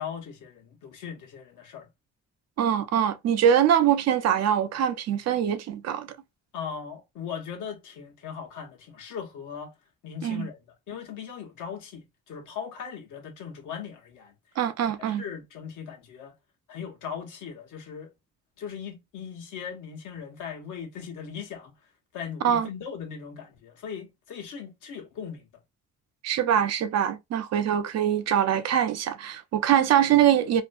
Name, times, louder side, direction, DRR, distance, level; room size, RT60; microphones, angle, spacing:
voice 1, 0.0-1.9 6.5-9.7 10.0-14.3 14.8-16.3 16.7-18.1 18.6-21.7 22.1-25.5, left 7 dB, 80° left, 0.9 m, -39 dB
voice 2, 2.6-6.1 10.2-10.5 14.6-15.2 22.4-22.7 26.2-30.6, right 9 dB, 60° right, 0.5 m, -23 dB
2.6 x 2.2 x 2.4 m
cardioid pair, 90°, 30 cm